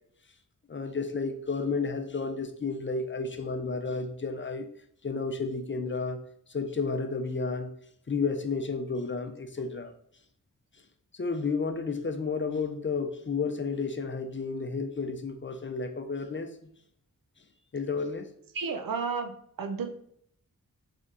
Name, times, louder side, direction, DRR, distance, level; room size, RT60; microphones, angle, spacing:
voice 1, 0.7-4.7 5.0-6.2 6.5-7.7 8.1-9.9 11.1-16.7 17.7-18.3, left 4 dB, 35° left, 7 dB, 0.6 m, -32 dB
voice 2, 18.5-19.3 19.6-19.9, right 5 dB, 70° right, 7 dB, 0.7 m, -31 dB
3.9 x 3.6 x 3.7 m, 0.68 s
wide cardioid pair, 75°, 34 cm